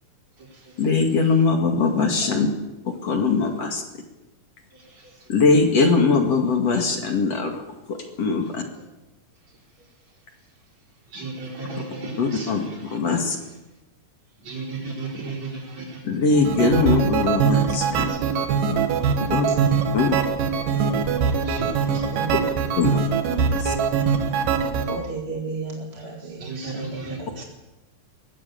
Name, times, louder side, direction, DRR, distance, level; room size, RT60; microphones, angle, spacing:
voice 1, 0.8-2.5 2.8-3.8 5.3-7.6 7.9-8.6 12.2-13.4 16.0-18.1 19.3-19.5 19.9-20.2 22.8-23.0 23.5-23.7, left 4 dB, 50° left, 3 dB, 3.1 m, -21 dB
voice 2, 11.1-12.5 14.5-16.0 21.4-21.8 26.4-27.4, right 3 dB, 55° right, 0 dB, 5.6 m, -33 dB
sound 1, 16.3-25.0, right 6 dB, 75° right, 3.2 m, -22 dB
voice 3, 24.9-27.4, right 3 dB, 25° right, 0 dB, 1.7 m, -33 dB
21.5 x 15.0 x 8.5 m, 1.0 s
omnidirectional pair, 3.8 m